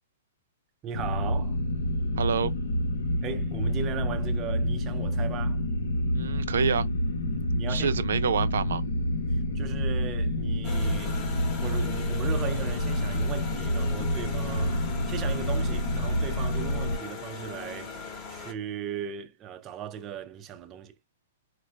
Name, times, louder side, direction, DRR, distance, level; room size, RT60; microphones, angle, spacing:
voice 1, 0.8-1.6 3.2-5.6 7.3-7.9 9.3-20.9, right 8 dB, 20° right, 0.3 m, -38 dB
sound 1, 0.9-17.0, left 1 dB, 80° left, 1.0 m, -28 dB
voice 2, 2.2-2.5 6.1-6.9 7.7-8.8, right 7 dB, 80° right, 0.5 m, -27 dB
sound 2, 10.6-18.5, left 4 dB, 25° left, 0.8 m, -40 dB
4.4 x 2.2 x 3.2 m
hypercardioid pair, 165°, 0 cm